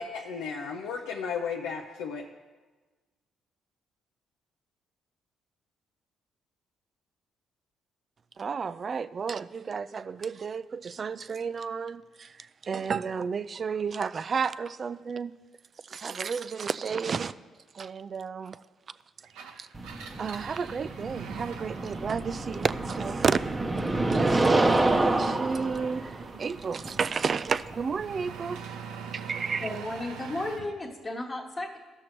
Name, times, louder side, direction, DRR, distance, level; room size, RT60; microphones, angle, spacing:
voice 1, 0.0-2.3, left 6 dB, 85° left, 0.5 m, -34 dB
voice 2, 8.4-15.3 15.8-17.3 17.7-18.6 19.5-19.7 20.2-23.4 24.1-28.6 29.1-29.7, right 5 dB, 45° right, 0.3 m, -31 dB
Engine, 19.2-30.7, right 6 dB, 85° right, 0.6 m, -44 dB
sound 1, 19.7-28.6, right 2 dB, 25° right, 0.7 m, -28 dB
voice 3, 29.6-31.8, left 2 dB, 25° left, 1.1 m, -34 dB
15.0 x 6.4 x 3.0 m
supercardioid pair, 70°, 0 cm